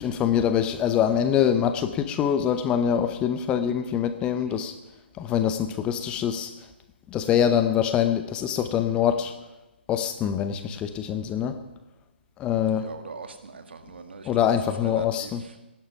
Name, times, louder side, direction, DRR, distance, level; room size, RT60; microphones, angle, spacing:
voice 1, 0.0-4.7 5.2-6.5 7.1-9.3 9.9-11.6 12.4-12.9 14.2-15.4, left 9 dB, 15° left, 10 dB, 0.8 m, -24 dB
voice 2, 12.7-14.4 14.8-15.6, right 4 dB, 65° right, 7 dB, 1.8 m, -41 dB
17.5 x 11.5 x 5.8 m, 1.0 s
figure-of-eight pair, 140°, 6 cm